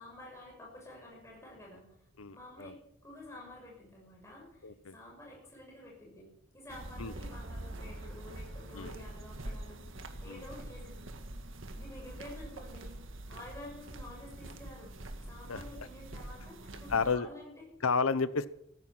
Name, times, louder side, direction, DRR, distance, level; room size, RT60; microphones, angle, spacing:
voice 1, 0.0-1.9 2.3-11.1 11.7-13.0 13.3-14.9 15.3-17.7, left 1 dB, 15° left, -2 dB, 6.6 m, -50 dB
voice 2, 2.2-2.7 4.6-4.9 7.0-7.1 8.7-8.9 10.2-10.4 15.5-15.6 16.9-17.3 17.8-18.5, left 5 dB, 80° left, 15 dB, 0.9 m, -31 dB
sound 1, 6.7-17.2, right 1 dB, 65° right, 1.8 m, -45 dB
15.0 x 14.5 x 6.1 m, 0.77 s
head